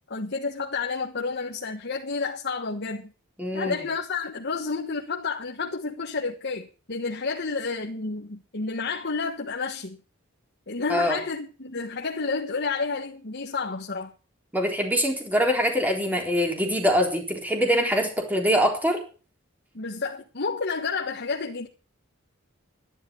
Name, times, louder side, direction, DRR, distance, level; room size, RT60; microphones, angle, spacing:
voice 1, 0.1-3.1 3.5-10.0 10.7-14.1 19.7-21.7, left 4 dB, 55° left, 1.4 m, -30 dB
voice 2, 3.4-3.8 10.9-11.2 14.5-19.0, equal, 10° right, 3.8 m, -24 dB
12.0 x 11.0 x 6.3 m
head